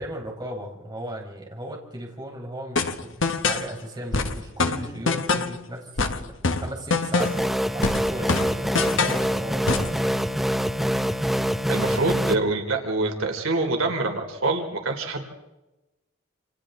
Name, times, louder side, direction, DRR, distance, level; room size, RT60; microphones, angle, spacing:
voice 1, 0.0-10.2, right 1 dB, 20° right, -1 dB, 4.5 m, -36 dB
sound 1, 2.8-3.7 4.1-5.6 6.0-7.5 7.8-9.3 9.7-10.0, left 3 dB, 65° left, 1.3 m, -25 dB
sound 2, 7.2-12.3, equal, ahead, 0.8 m, -25 dB
voice 2, 11.7-15.2, right 2 dB, 80° right, 4 dB, 3.2 m, -25 dB
28.5 x 28.5 x 3.8 m, 1.0 s
head